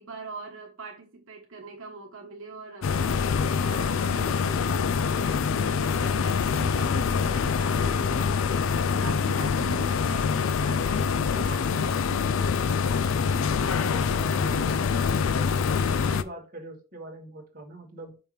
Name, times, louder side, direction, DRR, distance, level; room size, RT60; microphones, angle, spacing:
voice 1, 0.0-12.0, right 3 dB, 70° right, 1.2 m, -43 dB
sound 1, 2.8-16.2, left 6 dB, 70° left, 0.4 m, -25 dB
voice 2, 13.6-15.6 15.9-18.2, right 1 dB, 40° right, 1.5 m, -42 dB
5.6 x 5.1 x 3.2 m
head